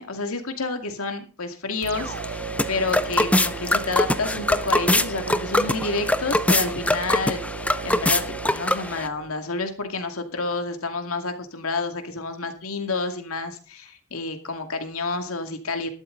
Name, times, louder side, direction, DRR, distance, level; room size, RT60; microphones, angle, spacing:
voice 1, 0.0-15.9, left 3 dB, 80° left, 6 dB, 2.4 m, -29 dB
sound 1, 1.8-9.3, right 6 dB, 65° right, 0.5 m, -36 dB
sound 2, 1.9-9.1, left 1 dB, 5° left, 0.6 m, -24 dB
12.5 x 12.5 x 4.0 m, 0.35 s
head